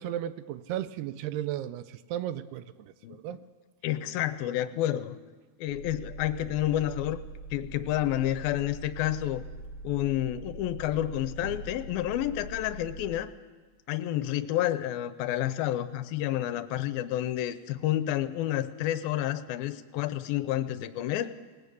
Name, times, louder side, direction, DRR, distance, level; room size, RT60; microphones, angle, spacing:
voice 1, 0.0-3.4, right 12 dB, 85° right, 14 dB, 2.8 m, -35 dB
voice 2, 3.8-5.2 5.6-7.2 7.5-9.4 9.8-13.3 13.9-21.3, left 13 dB, 75° left, 12 dB, 2.5 m, -29 dB
sound 1, 5.7-13.2, right 1 dB, 65° right, 4.0 m, -43 dB
20.0 x 20.0 x 8.4 m, 1.4 s
omnidirectional pair, 4.5 m